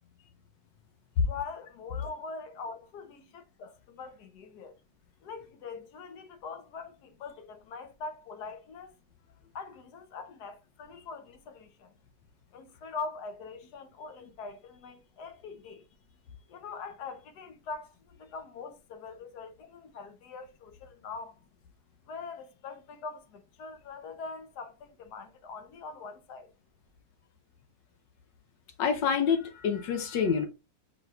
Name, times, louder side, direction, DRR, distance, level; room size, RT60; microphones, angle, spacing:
voice 1, 1.3-4.7 5.2-8.9 9.5-11.9 12.5-15.9 16.5-21.4 22.1-26.5, left 4 dB, 70° left, 1.2 m, -43 dB
voice 2, 28.8-30.5, left 6 dB, 90° left, 1.6 m, -26 dB
5.0 x 4.0 x 2.2 m
omnidirectional pair, 1.9 m